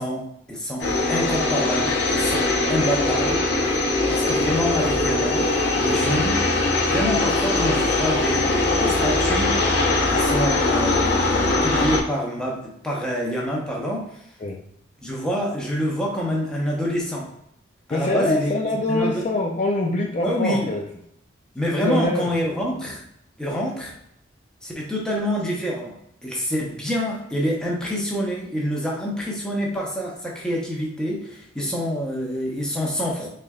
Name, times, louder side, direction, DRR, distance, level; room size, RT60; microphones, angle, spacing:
voice 1, 0.0-3.4 4.1-5.5 5.8-6.4 6.9-9.6 10.1-14.2 15.0-17.3 17.9-18.5 18.9-19.2 20.2-20.7 21.5-23.0 23.4-23.9 24.6-33.3, equal, 5° left, -3 dB, 0.8 m, -26 dB
sound 1, 0.8-12.0, left 2 dB, 60° left, 0.8 m, -21 dB
voice 2, 17.9-20.8 21.7-22.3, left 2 dB, 35° left, 0 dB, 0.4 m, -24 dB
3.8 x 3.3 x 2.3 m, 0.74 s
head